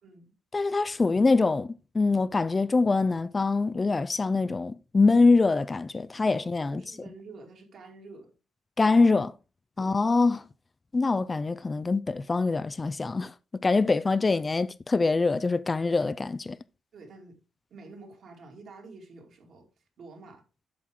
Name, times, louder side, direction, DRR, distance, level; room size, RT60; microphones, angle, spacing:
voice 1, 0.0-0.3 6.2-8.3 9.8-10.0 16.9-17.4 17.7-19.7 20.0-20.4, right 3 dB, 60° right, 2.4 m, -48 dB
voice 2, 0.5-6.8 8.8-9.3 9.8-10.4 10.9-13.3 13.6-16.6, left 3 dB, 25° left, 0.3 m, -24 dB
8.5 x 5.8 x 3.6 m
cardioid pair, 90°, 0 cm